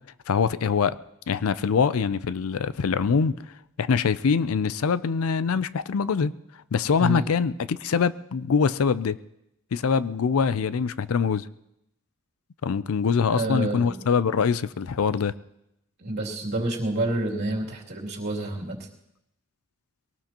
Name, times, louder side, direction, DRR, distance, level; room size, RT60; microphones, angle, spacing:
voice 1, 0.3-1.0 1.3-3.4 3.8-6.3 6.7-9.2 9.7-11.5 12.6-15.3, left 6 dB, 70° left, 16 dB, 0.4 m, -24 dB
voice 2, 13.3-13.9 16.0-18.8, right 1 dB, 50° right, -3 dB, 2.8 m, -28 dB
23.0 x 18.0 x 2.9 m, 0.82 s
head